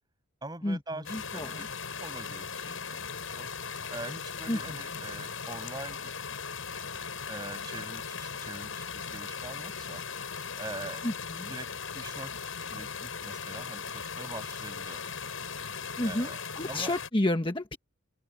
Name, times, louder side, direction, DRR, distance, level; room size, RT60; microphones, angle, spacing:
voice 1, 0.4-1.7 2.0-3.5 3.9-6.2 7.3-10.3 10.6-11.2 11.5-12.3 12.7-15.1 16.0-16.4 16.7-16.9, right 2 dB, 20° right, 7.4 m, -43 dB
sound 1, 1.0-17.1, left 6 dB, 85° left, 6.0 m, -38 dB
voice 2, 1.1-1.7 4.5-4.8 11.0-11.5 16.0-17.8, left 1 dB, 25° left, 1.2 m, -31 dB
head